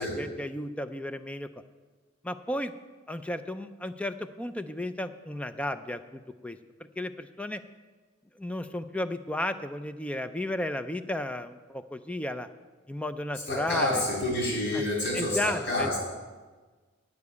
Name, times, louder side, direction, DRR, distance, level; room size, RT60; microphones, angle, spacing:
voice 1, 0.0-1.5 2.2-2.7 3.1-6.6 7.0-7.6 8.4-12.5 12.9-14.0 14.7-14.9 15.1-16.0, left 1 dB, 5° left, 11 dB, 0.4 m, -33 dB
voice 2, 13.5-16.0, left 1 dB, 65° left, -3 dB, 4.0 m, -28 dB
9.4 x 7.1 x 8.3 m, 1.4 s
head